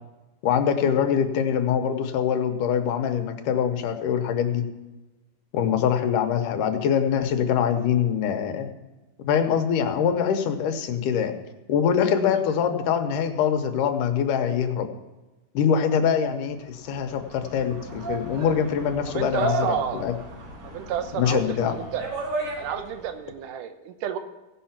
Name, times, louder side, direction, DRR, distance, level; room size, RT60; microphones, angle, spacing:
voice 1, 0.4-4.7 5.5-8.7 9.3-11.4 11.7-14.9 15.5-20.1 21.2-21.8, left 8 dB, 80° left, 7 dB, 2.4 m, -24 dB
sound 1, 16.7-23.1, right 2 dB, 65° right, 4.4 m, -34 dB
voice 2, 19.0-20.0 20.6-22.0 22.6-24.2, right 9 dB, 80° right, 8 dB, 2.4 m, -31 dB
16.5 x 5.7 x 5.8 m, 1.1 s
omnidirectional pair, 3.7 m